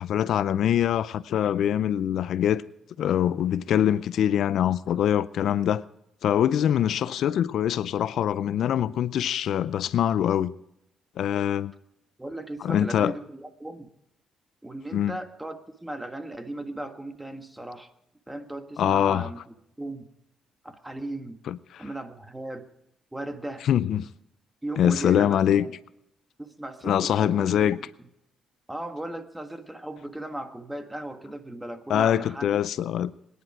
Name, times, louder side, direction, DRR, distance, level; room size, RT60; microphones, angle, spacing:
voice 1, 0.0-2.6 3.0-5.8 6.2-10.5 11.2-11.7 12.6-13.1 14.9-15.2 18.8-19.3 21.5-21.8 23.6-24.1 24.8-25.7 26.8-27.8 31.9-33.1, left 10 dB, 70° left, 0.5 m, -24 dB
voice 2, 12.2-13.9 14.6-17.9 18.3-20.1 20.6-21.4 21.8-22.7 23.1-23.7 24.6-25.8 26.4-27.8 28.7-32.6, right 1 dB, 10° right, 1.6 m, -37 dB
23.0 x 10.0 x 4.8 m
cardioid pair, 90°, 0 cm